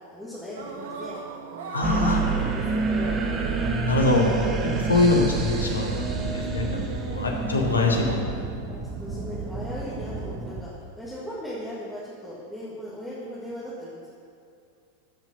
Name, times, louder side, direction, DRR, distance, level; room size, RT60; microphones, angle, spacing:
voice 1, 0.1-1.2 1.5-3.3 6.9-7.7 8.3-10.7 11.0-14.1, left 1 dB, ahead, -9 dB, 2.1 m, -38 dB
sound 1, 0.6-8.3, right 4 dB, 60° right, 1.1 m, -39 dB
voice 2, 1.7-2.2 3.9-4.3 4.7-6.8 7.1-8.3, left 3 dB, 75° left, 1 dB, 1.5 m, -23 dB
sound 2, 1.8-10.6, right 4 dB, 25° right, 1.1 m, -28 dB
14.0 x 6.1 x 5.5 m, 2.5 s
figure-of-eight pair, 90°, 0 cm